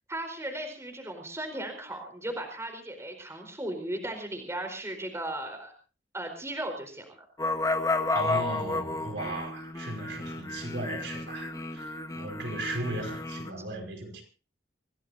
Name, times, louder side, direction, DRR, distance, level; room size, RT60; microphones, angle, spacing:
voice 1, 0.1-5.7 6.1-7.0, right 1 dB, 15° right, 4.3 m, -36 dB
sound 1, 7.4-13.5, left 2 dB, 20° left, 1.4 m, -32 dB
voice 2, 8.1-14.2, right 2 dB, 65° right, 5.4 m, -36 dB
26.5 x 17.5 x 2.7 m
head